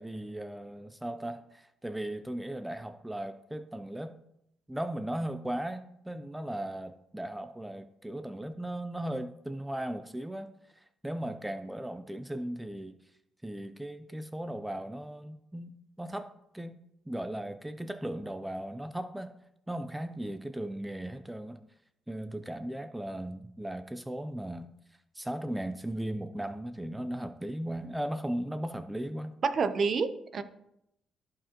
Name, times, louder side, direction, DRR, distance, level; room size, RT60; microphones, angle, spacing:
voice 1, 0.0-4.2 4.7-13.0 13.4-16.8 17.1-19.3 19.7-21.6 22.1-24.7 25.1-29.3, right 1 dB, 5° right, 10 dB, 0.4 m, -37 dB
voice 2, 29.4-30.4, right 5 dB, 50° right, 11 dB, 0.7 m, -28 dB
13.5 x 4.9 x 2.9 m, 0.81 s
cardioid pair, 90°, 0 cm